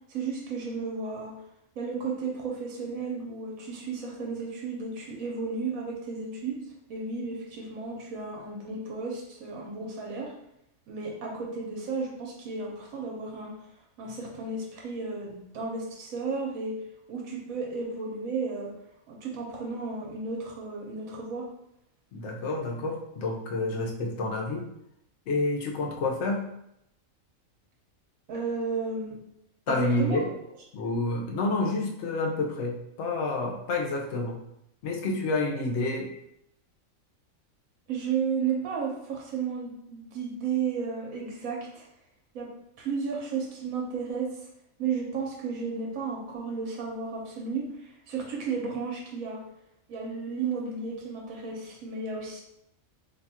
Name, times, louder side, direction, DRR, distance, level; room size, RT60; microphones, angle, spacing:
voice 1, 0.1-1.3 1.8-6.6 6.9-10.3 10.9-13.5 14.0-16.8 17.1-18.7 19.1-21.5 28.3-29.2 29.7-30.2 37.9-41.9 42.3-42.5 42.8-44.3 44.8-49.4 49.9-52.4, right 5 dB, 80° right, -1 dB, 1.2 m, -33 dB
voice 2, 22.1-24.7 25.3-26.4 29.7-30.2 30.7-34.4 34.8-36.1, left 2 dB, 65° left, 0 dB, 0.9 m, -29 dB
2.8 x 2.3 x 4.1 m, 0.78 s
omnidirectional pair, 1.4 m